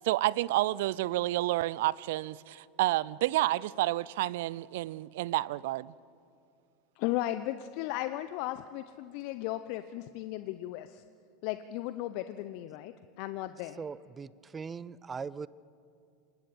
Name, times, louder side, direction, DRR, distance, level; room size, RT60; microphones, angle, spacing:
voice 1, 0.0-5.9, right 17 dB, 60° right, 0.5 m, -30 dB
voice 2, 7.0-11.0 11.4-13.8, left 15 dB, 55° left, 0.8 m, -36 dB
voice 3, 13.8-15.5, right 5 dB, 20° right, 0.6 m, -40 dB
26.5 x 20.0 x 8.7 m
figure-of-eight pair, 85°, 0 cm